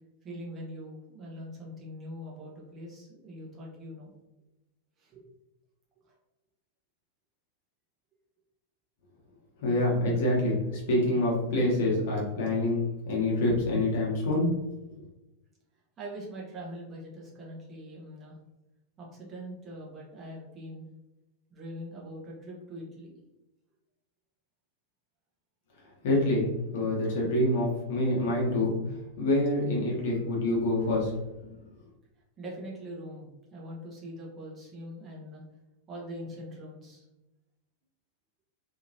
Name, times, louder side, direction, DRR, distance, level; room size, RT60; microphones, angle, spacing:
voice 1, 0.2-4.1 5.0-5.2 16.0-18.4 19.0-20.9 21.5-23.2 32.4-35.4 35.9-37.0, equal, 25° right, -4 dB, 0.9 m, -42 dB
voice 2, 9.6-14.5 14.8-15.0 26.0-28.7 29.2-31.1 31.4-31.5, left 1 dB, 55° left, -3 dB, 1.1 m, -26 dB
2.9 x 2.8 x 2.7 m, 1.0 s
figure-of-eight pair, 90°, 0 cm